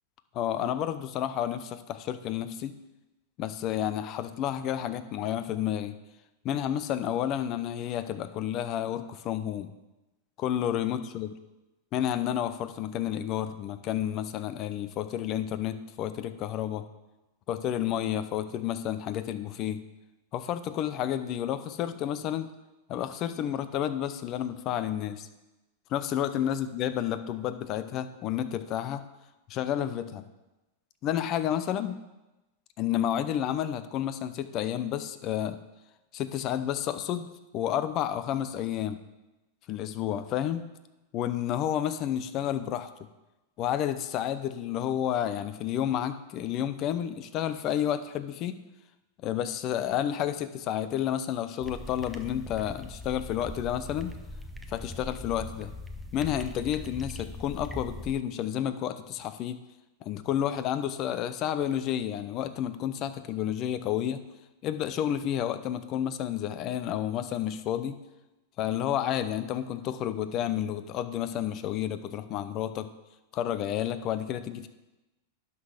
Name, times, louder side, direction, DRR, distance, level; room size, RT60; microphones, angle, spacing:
voice 1, 0.3-2.8 3.4-6.0 6.4-9.7 10.4-11.3 11.9-16.9 17.5-19.8 20.3-22.5 22.9-25.3 25.9-29.0 29.5-30.3 31.0-32.0 32.8-35.6 36.1-39.0 39.7-40.6 41.1-42.9 43.6-48.6 49.2-54.1 54.7-55.7 56.1-59.6 60.0-64.2 64.6-68.0 68.6-72.9 73.3-74.7, left 10 dB, 45° left, 12 dB, 0.7 m, -30 dB
sound 1, 51.6-58.1, left 1 dB, 5° right, 0.8 m, -41 dB
11.0 x 4.1 x 6.5 m, 1.0 s
hypercardioid pair, 105°, 0 cm